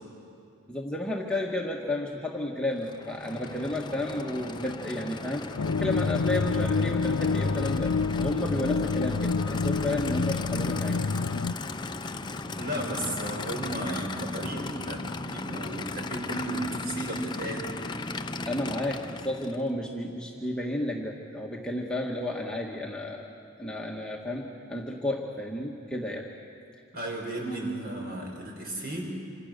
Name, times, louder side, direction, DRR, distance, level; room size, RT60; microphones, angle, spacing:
voice 1, 0.7-5.5 5.8-11.0 18.5-23.3 23.6-26.3, left 1 dB, 5° left, -2 dB, 1.6 m, -32 dB
Aircraft / Idling, 2.7-19.7, left 3 dB, 20° left, 0.7 m, -37 dB
sound 1, 5.6-11.5, left 4 dB, 90° left, 0.5 m, -27 dB
voice 2, 12.5-17.6 26.9-29.2, right 1 dB, 45° right, 0 dB, 5.6 m, -34 dB
28.0 x 26.5 x 6.7 m, 2.6 s
head